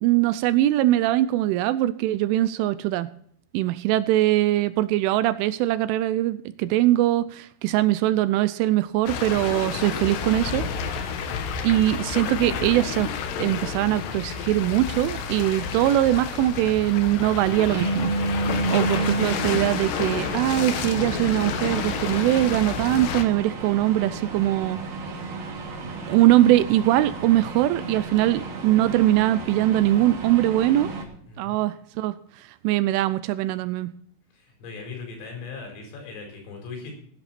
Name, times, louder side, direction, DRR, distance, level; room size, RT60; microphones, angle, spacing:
voice 1, 0.0-3.1 3.5-11.0 11.6-13.1 13.4-18.1 18.7-24.8 26.1-30.9 31.4-32.1 32.6-33.9, right 14 dB, 80° right, 14 dB, 3.0 m, -22 dB
sound 1, 9.1-23.2, left 7 dB, 70° left, 2.9 m, -30 dB
sound 2, 16.4-31.0, right 3 dB, 50° right, 3.5 m, -32 dB
voice 2, 31.3-31.6 34.3-37.0, left 4 dB, 85° left, 2 dB, 7.2 m, -39 dB
16.5 x 9.9 x 4.3 m, 0.64 s
omnidirectional pair, 5.8 m